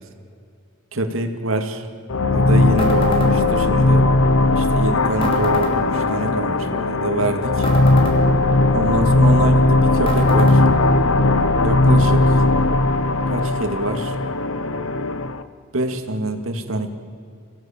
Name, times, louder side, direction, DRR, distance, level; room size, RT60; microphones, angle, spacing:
voice 1, 0.9-1.9 2.3-4.1 4.6-7.7 8.7-10.6 11.6-12.4 13.3-14.2 15.7-16.9, right 1 dB, 80° right, 6 dB, 2.3 m, -25 dB
sound 1, 2.1-15.4, left 2 dB, 75° left, 1.0 m, -17 dB
sound 2, 2.8-3.3 5.2-5.7 7.6-8.2 10.1-10.6, left 1 dB, 25° left, 4.1 m, -26 dB
26.0 x 16.5 x 8.9 m, 2.4 s
head